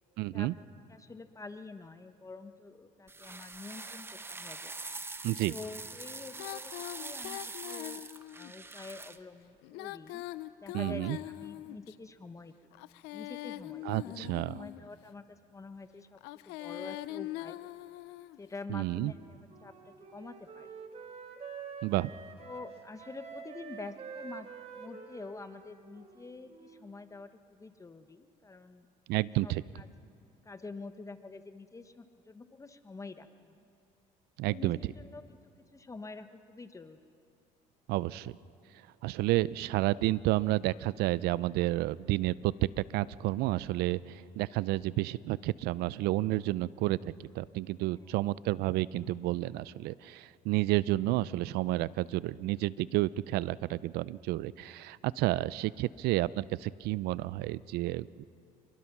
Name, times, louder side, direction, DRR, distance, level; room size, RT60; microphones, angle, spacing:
voice 1, 0.2-0.5 5.2-5.5 10.7-11.2 13.9-14.6 18.7-19.1 21.8-22.1 29.1-29.6 34.4-34.8 37.9-38.4 39.0-58.2, right 17 dB, 70° right, 20 dB, 0.5 m, -30 dB
voice 2, 0.9-4.7 5.5-8.0 8.3-10.2 10.6-12.7 13.1-14.1 14.4-16.2 16.5-17.6 18.4-20.7 22.4-24.5 24.7-28.9 29.4-29.9 30.4-33.7 34.5-35.4 35.7-37.0 47.9-48.2, left 3 dB, 20° left, 9 dB, 1.0 m, -47 dB
sound 1, 3.1-9.2, right 3 dB, 15° right, 0.9 m, -43 dB
Female singing, 6.4-8.5 9.6-11.9 12.7-14.9 16.1-18.4, left 17 dB, 85° left, 0.6 m, -42 dB
Wind instrument woodwind instrument, 19.0-27.0, right 6 dB, 35° right, 2.4 m, -47 dB
28.5 x 22.5 x 6.0 m, 2.4 s
supercardioid pair, 100°, 17 cm